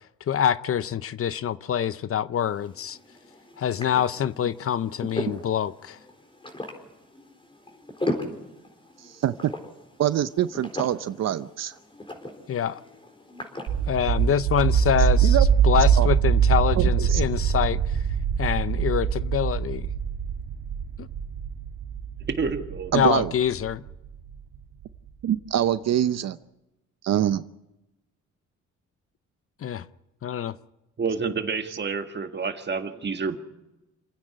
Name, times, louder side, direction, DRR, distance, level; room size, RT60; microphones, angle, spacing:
voice 1, 0.3-3.0 3.6-6.0 12.5-12.8 13.9-15.4 15.6-18.0 18.4-19.9 21.0-21.1 22.9-23.8 29.6-29.8 30.2-30.5, left 9 dB, 50° left, 0.7 m, -25 dB
sound 1, 2.4-15.3, left 1 dB, 15° left, 4.2 m, -38 dB
voice 2, 9.0-9.5 10.0-11.7 15.2-15.5 16.0-16.1 16.8-17.2 22.9-23.3 25.2-26.4 27.0-27.4, right 11 dB, 60° right, 0.7 m, -25 dB
sound 2, 13.7-24.4, right 8 dB, 80° right, 1.7 m, -23 dB
voice 3, 22.3-23.0 31.0-33.4, right 5 dB, 35° right, 1.9 m, -29 dB
27.5 x 9.8 x 9.8 m
cardioid pair, 90°, 30 cm